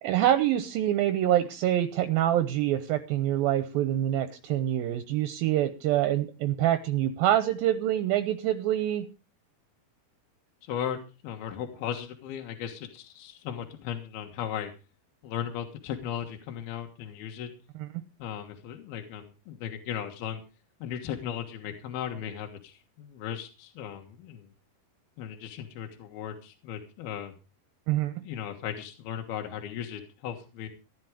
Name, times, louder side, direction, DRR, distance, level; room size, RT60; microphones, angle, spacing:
voice 1, 0.0-9.1 17.8-18.0 27.9-28.1, right 12 dB, 75° right, 10 dB, 2.6 m, -26 dB
voice 2, 10.6-14.7 15.2-17.5 18.2-20.4 20.8-24.5 25.2-27.3 28.2-30.7, left 9 dB, 75° left, 4 dB, 3.4 m, -36 dB
15.5 x 10.5 x 5.0 m, 0.32 s
omnidirectional pair, 4.5 m